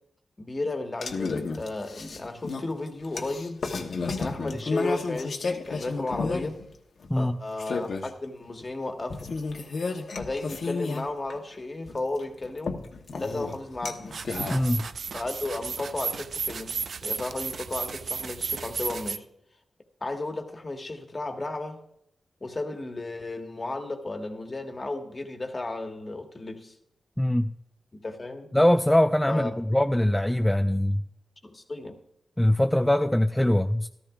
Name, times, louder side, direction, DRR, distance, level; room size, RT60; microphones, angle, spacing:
voice 1, 0.4-3.6 4.2-6.6 7.2-9.4 10.2-12.8 13.2-14.2 15.1-19.2 20.0-21.8 22.4-26.8 27.9-28.5 29.3-29.5 31.4-32.0, left 2 dB, 30° left, 4 dB, 1.6 m, -34 dB
sound 1, 1.0-6.7 7.0-7.1 7.6-8.1 9.1-11.6 11.9-14.7, left 4 dB, 65° left, 1.1 m, -32 dB
sound 2, 14.1-19.2, right 5 dB, 65° right, 0.4 m, -34 dB
voice 2, 14.5-14.9 27.2-27.5 28.5-31.0 32.4-33.9, left 1 dB, 5° left, 8 dB, 0.4 m, -22 dB
14.0 x 13.5 x 2.4 m, 0.78 s
cardioid pair, 85°, 0 cm